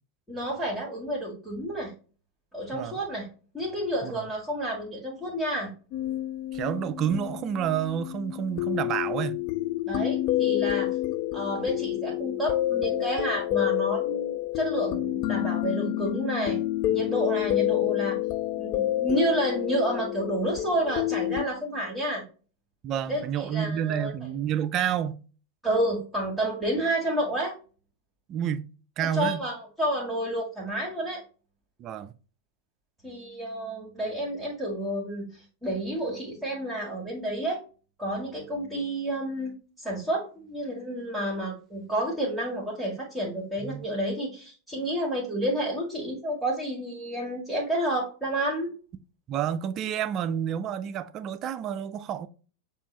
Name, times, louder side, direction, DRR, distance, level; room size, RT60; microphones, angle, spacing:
voice 1, 0.3-1.9 2.5-3.3 3.5-5.7 9.8-11.0 11.3-16.6 16.9-18.2 18.6-22.2 23.1-24.1 25.6-27.5 29.0-31.2 33.0-37.6 38.0-48.7, right 1 dB, ahead, 1.6 m, -30 dB
sound 1, 5.9-21.4, left 14 dB, 40° left, 0.4 m, -28 dB
voice 2, 6.5-9.4 22.8-25.2 28.3-28.6 29.0-29.4 31.8-32.1 43.6-43.9 49.3-52.3, right 9 dB, 35° right, 0.4 m, -29 dB
6.9 x 2.5 x 3.1 m
figure-of-eight pair, 90°, 0 cm